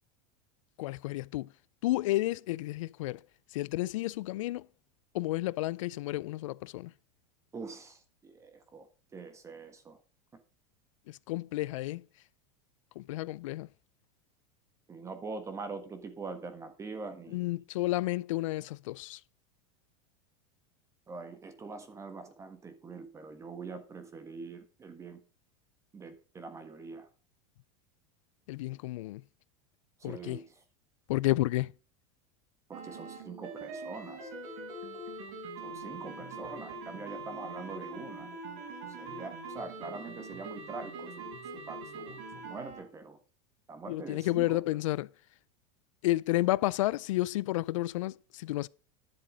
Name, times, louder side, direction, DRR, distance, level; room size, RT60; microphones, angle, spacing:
voice 1, 0.8-1.5 1.8-3.2 3.5-4.7 5.1-6.9 11.1-12.0 13.0-13.7 17.3-19.2 28.5-29.2 30.0-30.4 31.1-31.7 43.9-45.1 46.0-48.7, left 17 dB, 85° left, 0.4 m, -31 dB
voice 2, 7.5-8.9 9.1-10.0 14.9-17.4 21.1-25.2 25.9-27.1 30.0-30.4 32.7-34.3 35.6-38.3 39.0-41.3 41.7-43.2 43.7-44.6, right 4 dB, 20° right, 1.4 m, -44 dB
sound 1, 32.7-42.8, right 3 dB, 70° right, 4.6 m, -43 dB
10.5 x 7.3 x 5.1 m
supercardioid pair, 135°, 16 cm